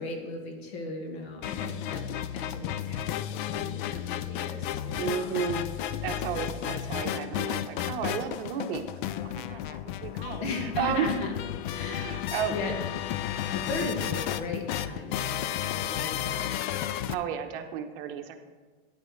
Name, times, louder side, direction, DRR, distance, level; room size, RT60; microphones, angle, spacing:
voice 1, 0.0-2.0 2.3-5.3 6.4-7.0 10.4-11.3 11.7-12.8 13.5-16.6, left 3 dB, 70° left, 3 dB, 2.1 m, -37 dB
sound 1, 1.4-17.1, left 11 dB, 50° left, 0.5 m, -33 dB
voice 2, 5.0-5.7 6.0-11.1 11.9-12.6 17.1-18.4, right 8 dB, 55° right, 6 dB, 1.1 m, -33 dB
13.0 x 9.7 x 3.3 m, 1.3 s
supercardioid pair, 145°, 33 cm